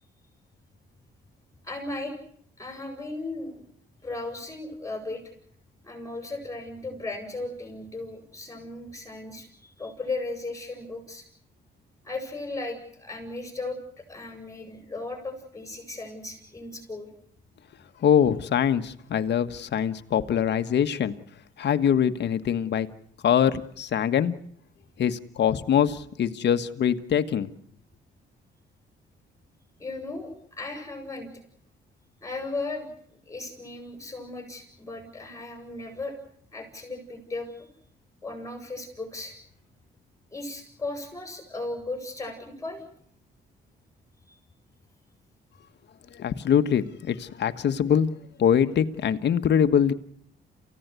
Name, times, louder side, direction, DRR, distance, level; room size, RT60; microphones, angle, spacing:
voice 1, 1.6-2.1 2.6-3.6 4.0-5.2 5.8-11.2 12.0-17.1 29.8-31.3 32.2-32.9 33.3-36.1 36.5-37.7 38.2-39.4 40.3-42.9 44.3-44.4, left 2 dB, 15° left, 4 dB, 7.6 m, -36 dB
voice 2, 18.0-21.1 21.6-22.9 23.2-24.4 25.0-27.5 46.1-48.1 48.4-49.9, left 8 dB, 60° left, 9 dB, 1.5 m, -23 dB
28.0 x 16.5 x 8.3 m, 0.65 s
cardioid pair, 90°, 20 cm